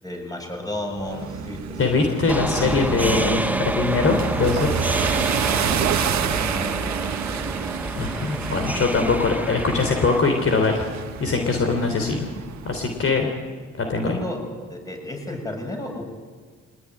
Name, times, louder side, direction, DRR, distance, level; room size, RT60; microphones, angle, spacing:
voice 1, 0.0-2.7 5.7-7.1 14.0-14.4 14.7-16.0, left 1 dB, 10° left, 2 dB, 7.9 m, -33 dB
sound 1, 0.9-13.1, right 8 dB, 65° right, 1.6 m, -29 dB
voice 2, 1.8-4.7 8.0-10.9 11.2-12.3 12.7-13.3 13.8-14.2, left 4 dB, 45° left, 4 dB, 3.7 m, -22 dB
sound 2, 2.3-10.2, right 1 dB, 5° right, 0.7 m, -28 dB
23.5 x 19.0 x 10.0 m, 1.5 s
cardioid pair, 90°, 30 cm